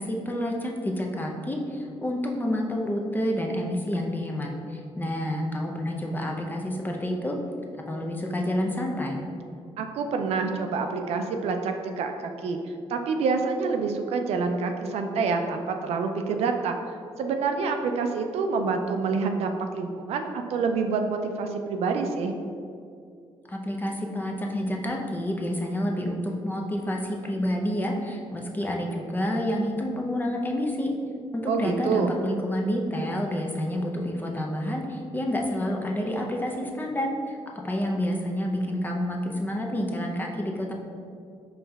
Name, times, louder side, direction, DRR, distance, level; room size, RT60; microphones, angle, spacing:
voice 1, 0.0-7.4 7.7-9.2 23.5-30.9 31.3-40.7, equal, 20° left, 0 dB, 0.6 m, -29 dB
voice 2, 9.8-12.6 12.9-16.8 17.2-22.3 31.5-32.1, right 4 dB, 80° right, 5 dB, 0.4 m, -27 dB
4.4 x 3.2 x 3.4 m, 2.4 s
cardioid pair, 85°, 10 cm